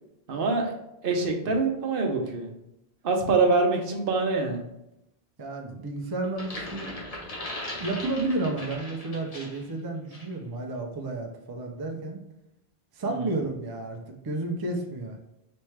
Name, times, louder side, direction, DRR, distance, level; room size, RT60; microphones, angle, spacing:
voice 1, 0.3-0.7 1.0-2.5 3.0-4.6, right 3 dB, 65° right, 3 dB, 0.9 m, -24 dB
voice 2, 5.4-6.9 7.8-12.2 12.9-14.0 14.2-15.2, right 2 dB, 30° right, 2 dB, 0.5 m, -31 dB
sound 1, 6.2-9.7 10.1-10.3, left 1 dB, 40° left, 1.0 m, -38 dB
4.3 x 3.4 x 3.2 m, 0.85 s
omnidirectional pair, 1.0 m